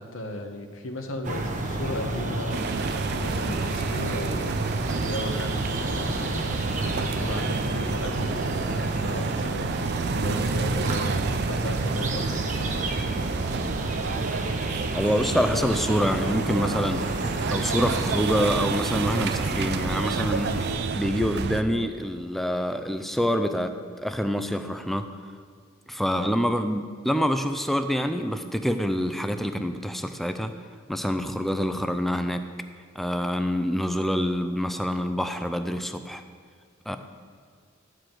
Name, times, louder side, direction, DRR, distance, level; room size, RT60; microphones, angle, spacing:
voice 1, 0.0-2.6 3.2-4.6 5.0-12.5, left 1 dB, 80° left, 5 dB, 1.0 m, -36 dB
sound 1, 1.2-20.7, right 2 dB, 40° right, 1.0 m, -31 dB
sound 2, 2.5-21.6, right 4 dB, 55° right, 0.4 m, -30 dB
voice 2, 14.9-17.1 17.5-20.6 20.9-25.1 25.9-30.5 30.9-32.4 33.0-36.2 36.9-37.0, equal, ahead, 8 dB, 0.4 m, -26 dB
10.5 x 4.9 x 7.6 m, 2.1 s
head